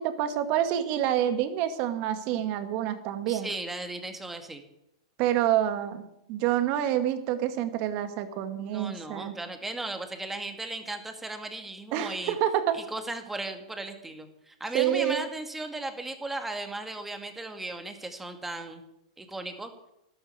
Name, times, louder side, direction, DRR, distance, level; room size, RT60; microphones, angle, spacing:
voice 1, 0.0-3.5 5.2-6.0 6.3-9.4 11.9-12.8 14.7-15.2, right 11 dB, 45° right, 9 dB, 2.0 m, -27 dB
voice 2, 3.3-4.6 8.6-12.4 12.7-18.8 19.2-19.7, right 2 dB, 5° right, 6 dB, 2.2 m, -36 dB
12.5 x 12.0 x 8.3 m, 0.83 s
hypercardioid pair, 120°, 3 cm